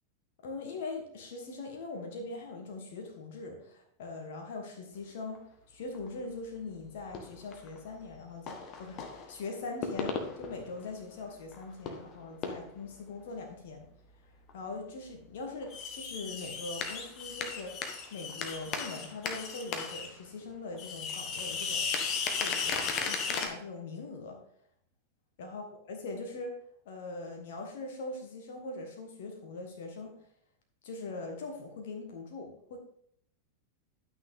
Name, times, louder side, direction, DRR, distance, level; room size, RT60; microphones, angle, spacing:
voice 1, 0.4-13.9 14.5-17.8 18.1-21.9 22.4-24.4 25.4-26.6 26.9-30.1 30.8-32.8, left 3 dB, 55° left, 3 dB, 1.6 m, -41 dB
sound 1, 5.3-5.4 5.9-6.1 7.1-7.8 8.5-9.3 9.6-10.9 11.2-11.3 11.5-12.1 12.4-12.8 14.5-14.6 15.6-20.1 20.4-20.5 20.7-23.5, left 5 dB, 35° left, 1.4 m, -35 dB
11.5 x 6.2 x 3.7 m, 0.68 s
figure-of-eight pair, 90°, 0 cm